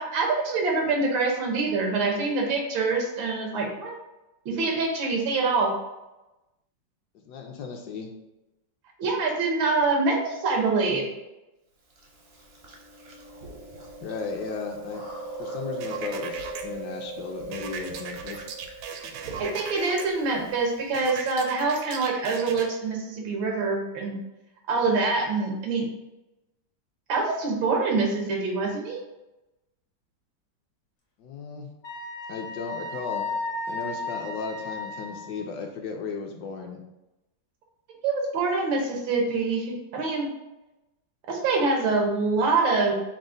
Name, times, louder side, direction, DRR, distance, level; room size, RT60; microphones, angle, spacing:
voice 1, 0.0-4.0 4.4-5.7 9.0-11.0 19.4-24.1 24.7-25.8 27.1-29.0 38.0-40.3 41.3-42.9, right 3 dB, 90° right, 0 dB, 1.7 m, -25 dB
voice 2, 7.3-8.1 14.0-15.0 15.4-18.5 31.2-31.7 32.3-33.3 33.7-36.8, left 4 dB, 70° left, 2 dB, 1.1 m, -35 dB
Chewing mastication, 12.0-20.9, right 2 dB, 55° right, 0.6 m, -40 dB
sound 1, 15.8-16.6 17.5-20.1 20.9-22.7, right 6 dB, 75° right, 1.1 m, -37 dB
Wind instrument woodwind instrument, 31.8-35.3, left 3 dB, 50° left, 0.7 m, -34 dB
6.1 x 2.1 x 3.8 m, 0.98 s
omnidirectional pair, 2.0 m